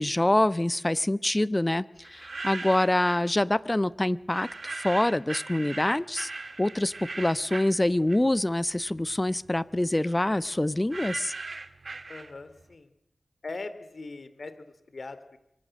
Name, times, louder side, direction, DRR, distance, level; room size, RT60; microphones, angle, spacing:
voice 1, 0.0-6.3 6.6-11.3, left 1 dB, 25° left, 15 dB, 1.0 m, -26 dB
sound 1, 2.0-3.3 4.3-8.5 8.9-12.6, right 3 dB, 60° right, 1.7 m, -39 dB
voice 2, 12.1-12.9 13.4-15.4, left 3 dB, 65° left, 12 dB, 2.8 m, -40 dB
25.5 x 24.0 x 7.7 m, 0.81 s
cardioid pair, 45°, 0 cm